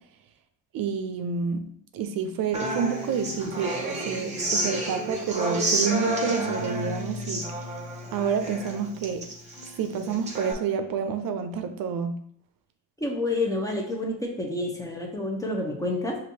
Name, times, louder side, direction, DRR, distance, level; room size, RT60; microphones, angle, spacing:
voice 1, 0.7-1.6 1.9-7.5 8.1-9.3 9.8-12.1, right 6 dB, 75° right, 7 dB, 0.6 m, -29 dB
Human voice / Acoustic guitar, 2.5-10.5, right 1 dB, 20° right, 0.9 m, -30 dB
voice 2, 13.0-16.2, left 2 dB, 10° left, 0 dB, 0.7 m, -29 dB
6.1 x 2.6 x 2.8 m, 0.66 s
cardioid pair, 125°, 35 cm